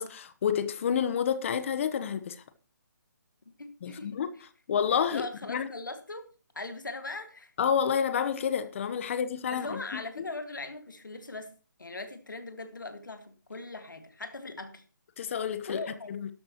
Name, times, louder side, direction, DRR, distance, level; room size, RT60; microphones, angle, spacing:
voice 1, 0.0-2.4 3.8-4.3 4.7-5.7 7.6-10.3 15.2-15.8 16.1-16.3, left 8 dB, 40° left, 1.0 m, -29 dB
voice 2, 3.6-4.2 4.7-4.8 5.1-6.3 6.5-7.5 9.5-11.5 11.8-14.8 15.7-16.1, left 2 dB, 85° left, 1.9 m, -40 dB
12.5 x 11.5 x 3.0 m
figure-of-eight pair, 150°, 10 cm